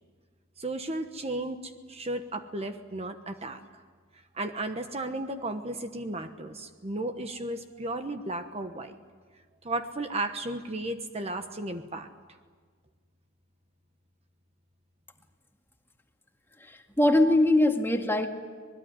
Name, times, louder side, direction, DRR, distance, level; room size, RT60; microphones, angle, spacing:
voice 1, 0.6-3.6 4.3-8.9 9.6-12.1, right 2 dB, 35° right, 7 dB, 1.2 m, -34 dB
voice 2, 16.7-18.3, left 1 dB, 10° left, 3 dB, 2.0 m, -22 dB
26.0 x 20.5 x 9.7 m, 1.6 s
head